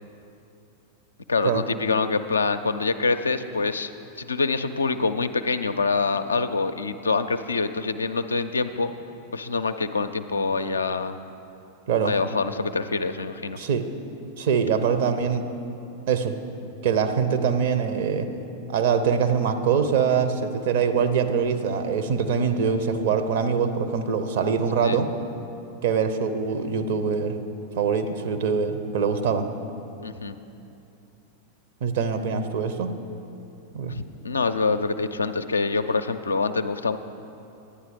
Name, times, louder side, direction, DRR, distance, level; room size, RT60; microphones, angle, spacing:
voice 1, 1.3-3.9 4.2-8.9 9.3-11.2 12.0-13.6 24.8-25.0 30.0-30.4 33.9-37.0, left 4 dB, 75° left, 9 dB, 0.4 m, -25 dB
voice 2, 13.6-13.9 14.4-15.4 16.1-16.4 16.8-18.3 18.7-25.1 25.8-27.4 27.7-29.5 31.8-33.0 33.7-33.9, right 6 dB, 55° right, 8 dB, 0.7 m, -23 dB
11.5 x 9.5 x 5.1 m, 2.8 s
figure-of-eight pair, 90°, 0 cm